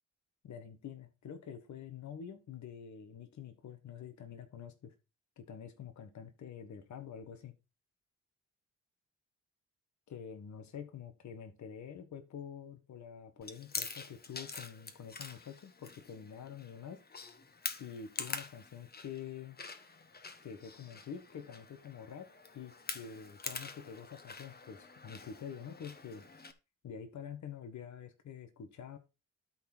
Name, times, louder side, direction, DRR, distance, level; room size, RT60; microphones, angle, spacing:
voice 1, 0.4-4.9 5.4-7.5 10.1-17.0 17.8-19.6 20.4-22.3 22.5-26.2 26.8-29.0, left 7 dB, 70° left, 8 dB, 1.5 m, -47 dB
Chewing mastication, 13.4-26.5, left 4 dB, 30° left, 1.2 m, -46 dB
12.5 x 4.2 x 4.4 m, 0.28 s
cardioid pair, 80°, 30 cm